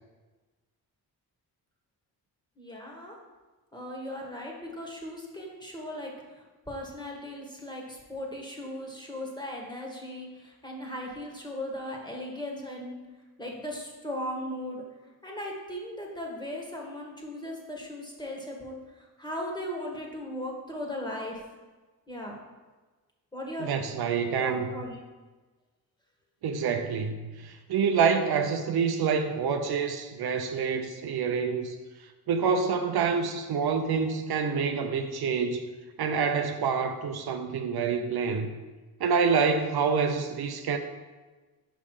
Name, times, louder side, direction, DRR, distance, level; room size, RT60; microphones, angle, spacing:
voice 1, 2.6-3.2 3.7-13.0 13.4-14.8 15.2-21.4 22.1-22.4 23.3-23.7 24.4-25.0, left 1 dB, 10° left, -1 dB, 1.8 m, -37 dB
voice 2, 23.6-24.7 26.4-31.8 32.3-35.6 36.0-38.5 39.0-40.8, right 6 dB, 70° right, 6 dB, 0.6 m, -27 dB
6.0 x 5.3 x 4.9 m, 1.3 s
cardioid pair, 65°, 40 cm